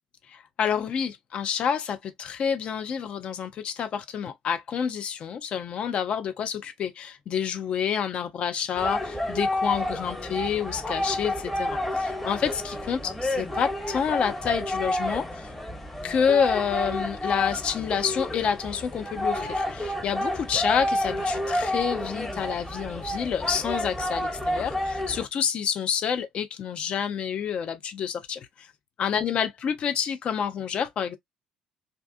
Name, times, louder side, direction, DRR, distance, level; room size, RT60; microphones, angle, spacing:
voice 1, 0.3-15.5 16.0-28.7 29.0-31.2, left 7 dB, 45° left, 0.6 m, -28 dB
sound 1, 8.8-25.2, left 1 dB, 10° left, 0.9 m, -30 dB
2.7 x 2.3 x 2.5 m
figure-of-eight pair, 50°, 3 cm